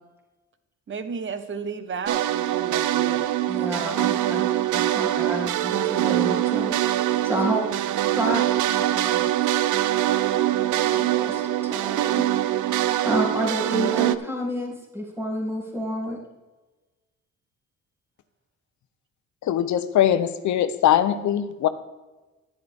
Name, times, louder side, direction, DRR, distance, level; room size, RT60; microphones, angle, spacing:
voice 1, 0.9-3.3 7.4-7.7, right 5 dB, 40° right, 10 dB, 1.1 m, -33 dB
sound 1, 2.1-14.2, right 13 dB, 80° right, 0.6 m, -23 dB
voice 2, 3.5-6.8 7.2-7.6 8.1-8.5 8.7-9.5 10.6-12.2 12.7-16.2, equal, 10° right, -3 dB, 2.9 m, -30 dB
voice 3, 19.5-21.7, left 10 dB, 70° left, 12 dB, 0.8 m, -21 dB
10.5 x 10.5 x 3.6 m, 1.2 s
cardioid pair, 90°, 30 cm